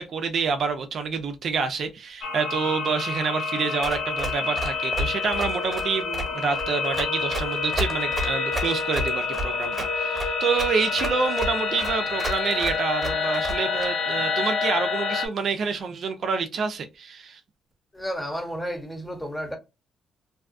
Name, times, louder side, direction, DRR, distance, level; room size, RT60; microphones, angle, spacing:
voice 1, 0.0-17.4, right 5 dB, 60° right, 0.4 m, -27 dB
sound 1, 2.2-15.3, left 4 dB, 60° left, 0.6 m, -28 dB
Run, 3.8-13.9, right 1 dB, 25° right, 1.1 m, -32 dB
voice 2, 17.9-19.6, equal, 10° left, 0.9 m, -32 dB
2.6 x 2.3 x 2.4 m
cardioid pair, 90°, 0 cm